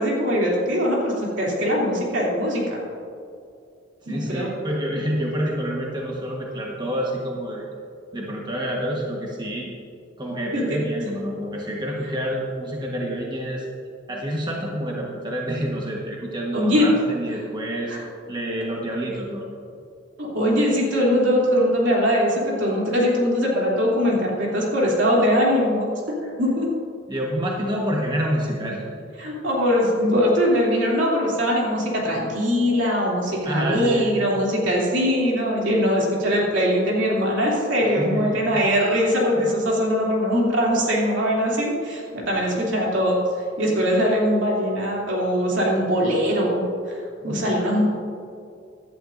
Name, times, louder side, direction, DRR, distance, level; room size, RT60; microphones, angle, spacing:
voice 1, 0.0-2.6 4.1-4.5 10.5-10.8 16.5-16.9 17.9-18.0 20.2-26.7 29.2-43.2 43.6-47.8, equal, 75° right, -4 dB, 2.9 m, -21 dB
voice 2, 4.0-7.7 8.1-9.7 10.2-13.6 14.1-17.9 18.3-19.8 27.1-28.9 33.4-34.2 37.8-38.6 39.4-39.5 47.2-47.4, equal, 25° right, -2 dB, 1.3 m, -28 dB
16.5 x 11.5 x 2.6 m, 2.5 s
head